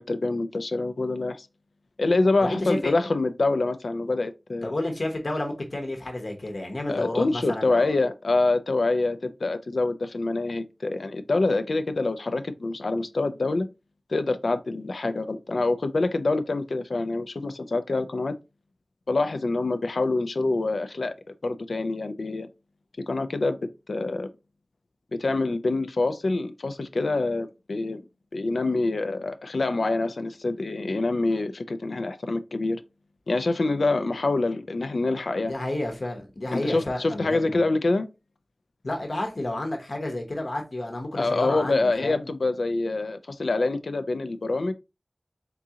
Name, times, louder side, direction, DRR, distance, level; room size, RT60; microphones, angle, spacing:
voice 1, 0.0-1.5 2.0-4.7 6.9-13.7 14.1-18.3 19.1-21.1 21.4-22.5 23.1-23.6 23.9-24.3 25.2-28.0 28.3-32.8 33.3-35.5 36.5-38.1 41.2-44.7, left 2 dB, 90° left, 0.4 m, -26 dB
voice 2, 2.4-2.9 4.6-7.9 35.5-37.6 38.8-42.3, left 1 dB, 65° left, 0.9 m, -31 dB
3.8 x 3.6 x 2.8 m
wide cardioid pair, 55°, 0 cm